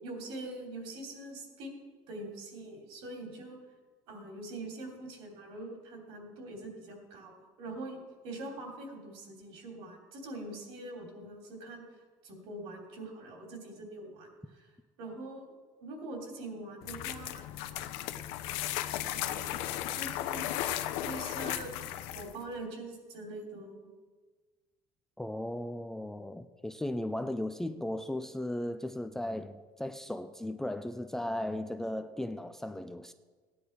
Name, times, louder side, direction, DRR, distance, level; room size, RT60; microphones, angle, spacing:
voice 1, 0.0-3.6 4.1-11.8 12.2-14.3 14.5-14.7 15.0-15.5 15.8-17.4 19.1-19.5 19.9-20.5 21.0-21.8 22.1-23.8, right 2 dB, 70° right, 1 dB, 3.2 m, -43 dB
sound 1, 16.8-22.4, left 12 dB, 80° left, 0.8 m, -35 dB
voice 2, 25.2-33.1, left 1 dB, 5° left, 8 dB, 0.4 m, -36 dB
16.0 x 10.0 x 4.6 m, 1.4 s
cardioid pair, 160°, 10 cm